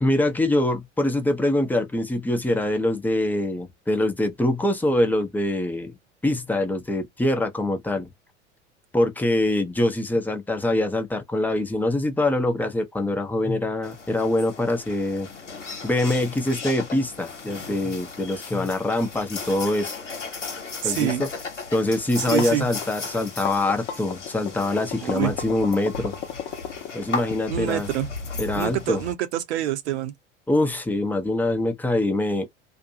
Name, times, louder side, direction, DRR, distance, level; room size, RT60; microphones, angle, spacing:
voice 1, 0.0-5.9 6.2-8.1 8.9-15.3 15.8-20.0 20.8-21.3 21.7-26.2 26.9-27.9 28.4-29.0 30.5-32.5, left 1 dB, 5° left, 0.6 m, -24 dB
sound 1, 13.8-29.1, left 4 dB, 90° left, 1.0 m, -36 dB
voice 2, 20.8-21.2 22.3-22.7 25.0-25.3 27.5-28.1 28.5-30.1, right 13 dB, 65° right, 0.7 m, -26 dB
sound 2, 22.4-27.3, left 8 dB, 45° left, 0.7 m, -34 dB
2.5 x 2.2 x 2.7 m
figure-of-eight pair, 80°, 36 cm